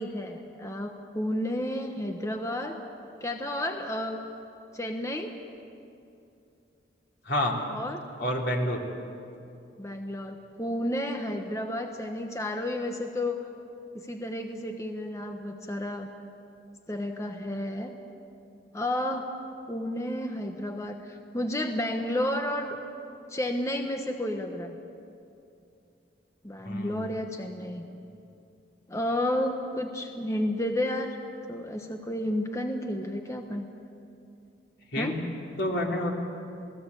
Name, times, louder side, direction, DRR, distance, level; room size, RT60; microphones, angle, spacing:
voice 1, 0.0-2.8 3.2-4.2 4.7-5.3 7.7-8.0 9.8-13.4 13.9-16.1 16.9-17.9 18.7-19.3 19.7-22.8 23.3-24.8 26.4-27.9 28.9-31.2 31.5-33.7 34.9-35.2, left 1 dB, 15° left, 4 dB, 1.1 m, -31 dB
voice 2, 7.2-7.6 8.2-8.9 26.6-27.1 34.9-35.2 35.6-36.1, left 1 dB, 70° left, 0 dB, 3.3 m, -28 dB
27.5 x 18.5 x 8.4 m, 2.7 s
head